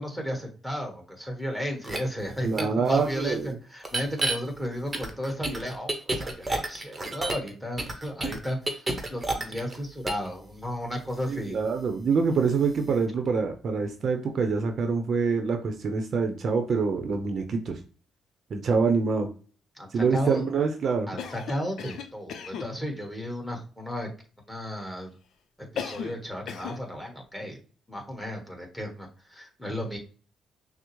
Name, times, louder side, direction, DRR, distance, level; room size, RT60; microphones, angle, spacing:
voice 1, 0.0-11.6 19.7-20.4 21.1-24.1 24.5-25.1 25.7-27.6 27.9-30.0, equal, ahead, 2 dB, 1.4 m, -34 dB
sound 1, 1.8-2.0 2.6-2.7 3.8-4.4 4.9-7.5 7.8-9.8 10.1-10.3, right 2 dB, 20° right, 0.9 m, -29 dB
voice 2, 2.4-3.6 11.3-17.8 18.5-19.3 19.9-21.1, right 5 dB, 55° right, 5 dB, 0.7 m, -25 dB
Cough, 21.2-22.7 25.8-26.2 26.5-26.8, left 7 dB, 70° left, 0.5 m, -36 dB
6.0 x 2.0 x 3.1 m, 0.39 s
cardioid pair, 90°, 0 cm